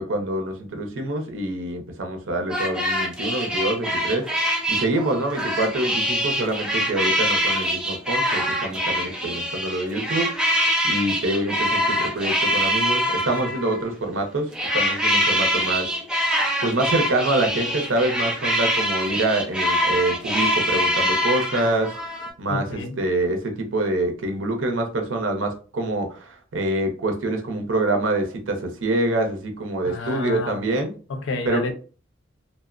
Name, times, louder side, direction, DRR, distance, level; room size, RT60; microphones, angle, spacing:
voice 1, 0.0-4.3 4.7-10.3 10.8-15.9 16.6-21.9 22.4-30.9 31.5-31.6, right 2 dB, 90° right, 0.6 m, -25 dB
sound 1, 2.5-13.9 14.5-22.3, equal, 5° right, 0.4 m, -24 dB
voice 2, 22.5-23.0 29.9-30.6 31.1-31.7, left 3 dB, 75° left, 0.5 m, -30 dB
2.7 x 2.0 x 2.4 m
head